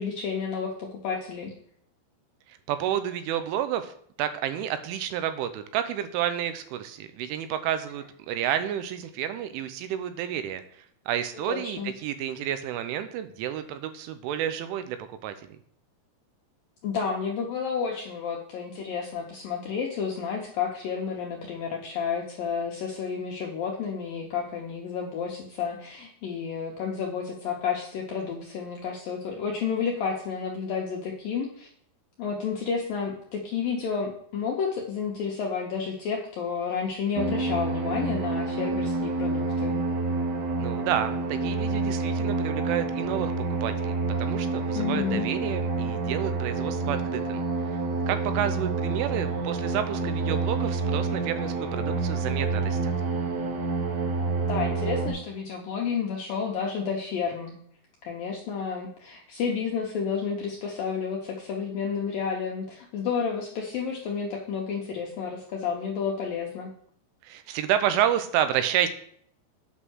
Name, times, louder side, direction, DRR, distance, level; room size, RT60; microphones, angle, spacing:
voice 1, 0.0-1.5 11.5-11.9 16.8-31.7 32.2-39.8 44.7-45.3 54.4-57.6 58.0-66.7, left 6 dB, 75° left, -1 dB, 2.1 m, -31 dB
voice 2, 2.5-3.9 4.2-10.6 11.1-15.0 15.2-15.3 40.6-47.4 48.1-52.9 67.2-68.9, right 10 dB, 85° right, 10 dB, 3.2 m, -30 dB
sound 1, 37.2-55.1, right 3 dB, 65° right, 3.0 m, -28 dB
8.7 x 5.6 x 6.3 m, 0.63 s
omnidirectional pair, 5.5 m